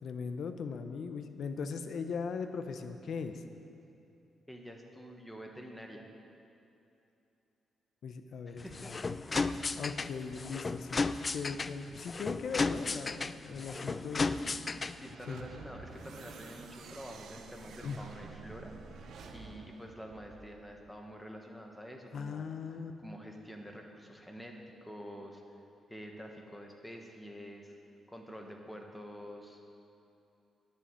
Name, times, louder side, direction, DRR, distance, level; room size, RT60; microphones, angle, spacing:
voice 1, 0.0-3.4 8.0-9.0 9.7-11.0 11.3-14.3 15.3-15.4 17.8-18.0 22.1-22.9, left 5 dB, 65° left, 8 dB, 0.8 m, -39 dB
voice 2, 4.5-6.0 8.5-9.1 13.7-18.7 19.3-22.5 23.0-24.6 24.8-25.4 25.9-27.8 28.1-29.7, equal, 5° left, 2 dB, 1.4 m, -47 dB
sound 1, 8.6-15.1, left 3 dB, 30° left, 0.3 m, -34 dB
sound 2, 14.7-20.9, right 4 dB, 70° right, 0.9 m, -50 dB
10.0 x 7.0 x 9.1 m, 2.8 s
cardioid pair, 105°, 0 cm